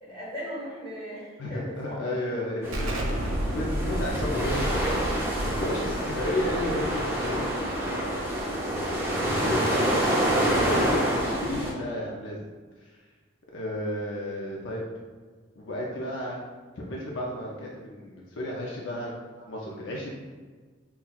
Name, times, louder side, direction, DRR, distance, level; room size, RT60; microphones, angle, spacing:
voice 1, 0.0-2.0 19.4-19.5, equal, 25° left, -7 dB, 1.2 m, -38 dB
voice 2, 1.4-5.0 5.4-7.4 7.9-8.5 9.3-12.4 13.5-14.9 15.6-16.4 16.8-19.1 19.5-20.1, left 1 dB, 70° left, -3 dB, 0.5 m, -33 dB
sound 1, 2.6-11.7, equal, 10° right, 0.5 m, -27 dB
Explosion, 2.7-8.2, equal, 90° right, 0.5 m, -32 dB
5.6 x 2.3 x 2.2 m, 1.4 s
head